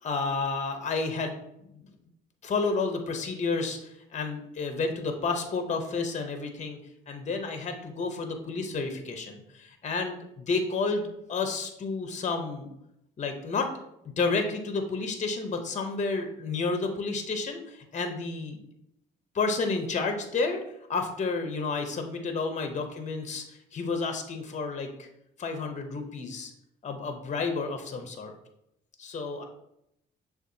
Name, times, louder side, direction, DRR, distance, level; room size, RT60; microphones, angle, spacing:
voice 1, 0.0-1.4 1.7-1.9 2.4-6.8 7.1-12.7 13.2-13.7 14.2-18.6 19.3-20.6 20.9-25.1 25.4-26.5 26.8-28.3 29.0-29.4, left 4 dB, 35° left, 6 dB, 0.7 m, -31 dB
6.5 x 2.4 x 2.6 m, 0.80 s
cardioid pair, 90°, 20 cm